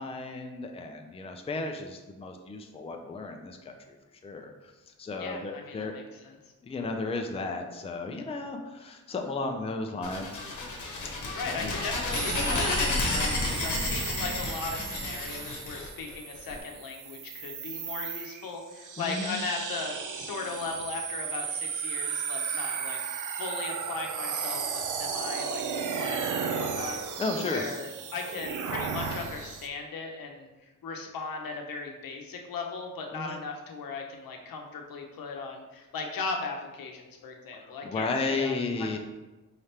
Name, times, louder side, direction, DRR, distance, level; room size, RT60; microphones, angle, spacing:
voice 1, 0.0-3.7 4.2-4.5 5.0-5.9 6.6-10.3 11.4-11.8 19.0-19.4 27.2-27.6 33.1-33.4 37.7-39.0, left 3 dB, 20° left, 4 dB, 0.4 m, -33 dB
voice 2, 5.2-6.4 11.3-23.0 23.3-30.5 30.8-39.0, left 4 dB, 90° left, 2 dB, 0.7 m, -37 dB
sound 1, 10.0-16.5, left 2 dB, 60° left, 1.0 m, -31 dB
sound 2, 12.1-29.7, right 6 dB, 65° right, 0.5 m, -35 dB
4.8 x 3.3 x 2.8 m, 1.1 s
wide cardioid pair, 125°, 33 cm